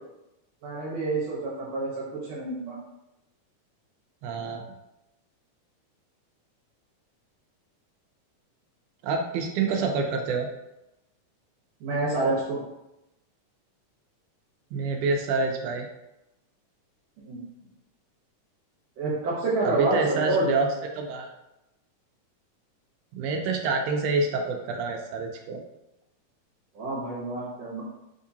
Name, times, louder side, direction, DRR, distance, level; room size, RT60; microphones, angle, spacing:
voice 1, 0.6-2.8 11.8-12.6 17.2-17.4 19.0-20.4 26.8-27.8, right 2 dB, 65° right, -5 dB, 1.8 m, -28 dB
voice 2, 4.2-4.6 9.0-10.5 14.7-15.9 19.6-20.7 20.9-21.3 23.1-25.6, right 4 dB, 80° right, 3 dB, 1.9 m, -27 dB
4.3 x 3.6 x 2.7 m, 0.91 s
omnidirectional pair, 3.7 m